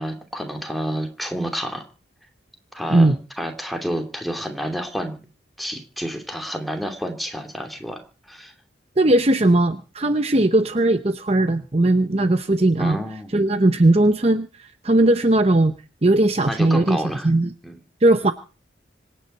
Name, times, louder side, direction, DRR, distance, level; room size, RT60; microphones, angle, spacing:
voice 1, 0.0-1.8 2.7-5.2 5.6-8.5 12.8-13.3 16.4-17.3 17.6-17.8, equal, ahead, 3 dB, 2.8 m, -29 dB
voice 2, 9.0-13.0 13.3-15.7 16.0-17.5 18.0-18.3, right 2 dB, 35° right, 10 dB, 0.8 m, -18 dB
26.0 x 9.5 x 4.4 m, 0.37 s
head